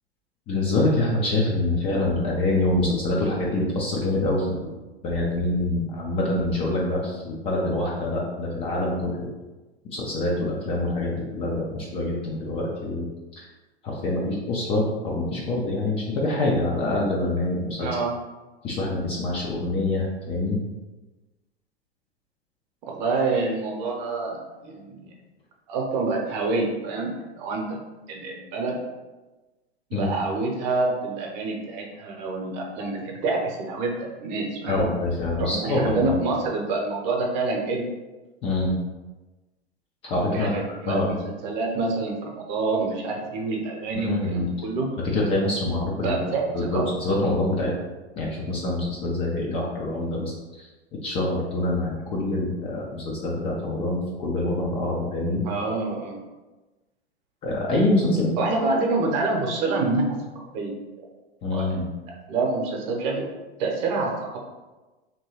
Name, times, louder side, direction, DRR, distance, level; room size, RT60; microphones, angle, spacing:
voice 1, 0.5-4.7 5.0-9.3 9.8-13.1 13.4-13.5 13.8-17.9 18.6-20.6 29.9-30.1 34.7-36.1 38.4-38.7 40.0-40.6 40.9-41.2 43.9-44.5 45.0-46.1 46.5-47.7 48.2-50.3 50.6-50.7 51.0-55.4 57.4-58.3 61.4-61.8, left 2 dB, 20° left, -3 dB, 0.4 m, -25 dB
voice 2, 17.8-18.1 22.9-25.1 25.7-27.8 28.1-28.8 29.9-34.8 35.4-37.9 40.3-41.2 41.4-44.9 46.0-46.4 46.7-46.9 55.4-56.2 58.4-60.7 61.5-61.6 62.1-63.2 63.6-64.4, right 3 dB, 45° right, 0 dB, 0.8 m, -27 dB
3.0 x 2.8 x 2.9 m, 1.2 s
figure-of-eight pair, 90°, 32 cm